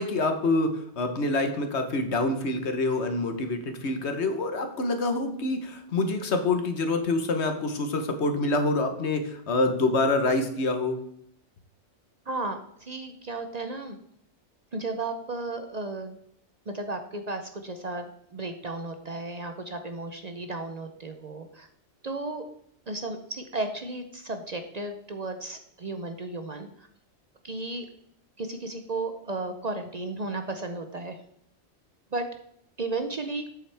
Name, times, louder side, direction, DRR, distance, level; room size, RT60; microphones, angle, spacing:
voice 1, 0.0-11.0, left 2 dB, 70° left, 6 dB, 1.4 m, -26 dB
voice 2, 12.3-14.0 14.7-16.2 16.7-21.7 22.0-22.5 22.9-26.9 27.4-27.9 28.4-31.2 32.1-32.3 32.8-33.5, right 2 dB, 40° right, 6 dB, 0.7 m, -34 dB
8.5 x 7.3 x 3.4 m, 0.70 s
omnidirectional pair, 1.2 m